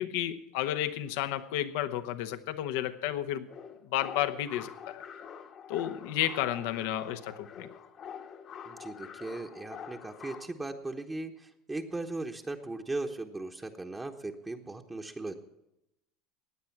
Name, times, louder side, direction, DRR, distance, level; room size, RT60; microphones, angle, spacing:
voice 1, 0.0-3.5 3.8-5.0 5.7-7.7, left 12 dB, 70° left, 10 dB, 0.9 m, -32 dB
sound 1, 3.5-10.5, left 7 dB, 45° left, 1.2 m, -46 dB
voice 2, 8.7-11.3 11.7-15.3, right 2 dB, 15° right, 3 dB, 1.1 m, -37 dB
16.5 x 9.4 x 5.9 m, 0.87 s
hypercardioid pair, 85°, 0 cm